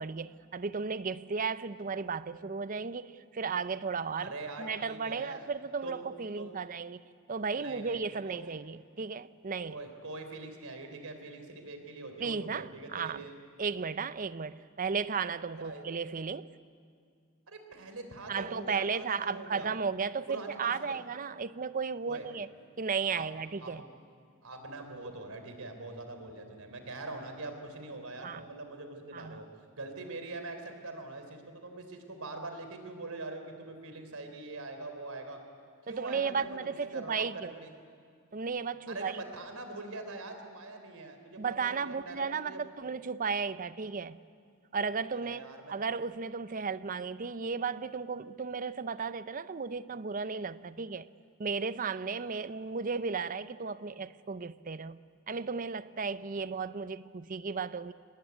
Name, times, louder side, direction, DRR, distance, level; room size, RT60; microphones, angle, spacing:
voice 1, 0.0-4.3 4.6-7.0 7.3-9.8 12.2-13.2 13.6-16.5 18.3-22.5 22.8-23.8 28.2-28.4 29.1-29.4 35.9-37.5 38.3-39.2 41.4-44.2 44.7-45.4 45.7-51.1 51.4-55.0 55.3-57.9, right 5 dB, 40° right, 0.6 m, -34 dB
voice 2, 4.2-5.5 5.8-6.0 6.4-6.6 7.6-8.4 9.7-13.3 15.6-15.8 17.5-19.7 20.3-21.0 22.0-22.3 23.1-23.2 23.6-23.9 24.4-29.5 29.7-35.4 35.9-37.7 38.9-42.6 45.2-45.7, right 2 dB, 75° right, 3.5 m, -43 dB
25.0 x 19.5 x 9.5 m
head